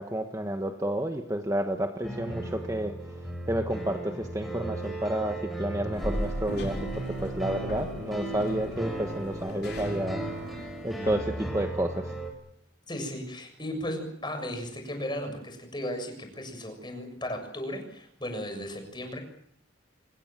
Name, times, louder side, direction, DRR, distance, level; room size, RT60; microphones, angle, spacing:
voice 1, 0.0-3.0 3.5-10.2 10.8-12.2, right 1 dB, 15° right, 5 dB, 1.3 m, -30 dB
sound 1, 2.0-12.3, right 1 dB, ahead, 6.0 m, -36 dB
sound 2, 5.9-11.2, equal, 55° left, 4.0 m, -38 dB
voice 2, 12.9-19.2, left 1 dB, 25° left, 6 dB, 7.0 m, -35 dB
26.5 x 22.0 x 7.5 m, 0.70 s
head